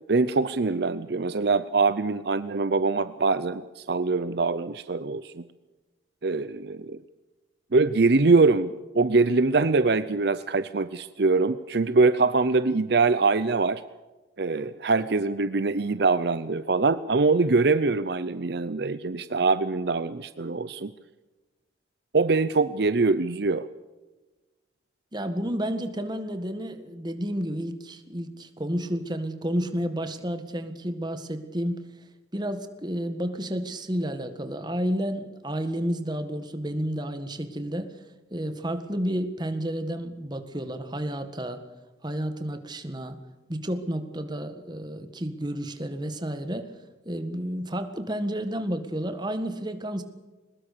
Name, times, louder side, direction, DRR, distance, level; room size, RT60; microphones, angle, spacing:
voice 1, 0.1-5.4 6.2-7.0 7.7-13.8 14.4-20.9 22.1-23.7, right 3 dB, 55° right, 13 dB, 0.6 m, -23 dB
voice 2, 25.1-31.8 32.3-37.9 38.3-41.6 42.0-43.2 43.5-46.7 47.1-50.0, equal, 20° right, 8 dB, 1.7 m, -31 dB
22.0 x 20.0 x 6.8 m, 1.2 s
head